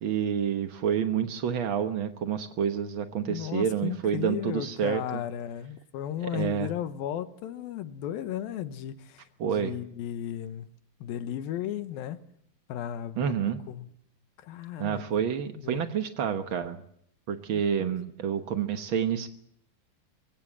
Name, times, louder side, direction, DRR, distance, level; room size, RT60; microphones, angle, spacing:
voice 1, 0.0-5.2 6.2-6.7 9.4-9.8 13.2-13.6 14.8-16.8 17.3-19.3, right 8 dB, 85° right, 1.1 m, -28 dB
voice 2, 3.2-10.7 11.0-12.2 12.7-13.3 13.7-13.9 14.4-15.0 15.6-15.8 17.5-17.6, left 11 dB, 85° left, 2.9 m, -35 dB
24.0 x 17.0 x 7.5 m
omnidirectional pair, 4.1 m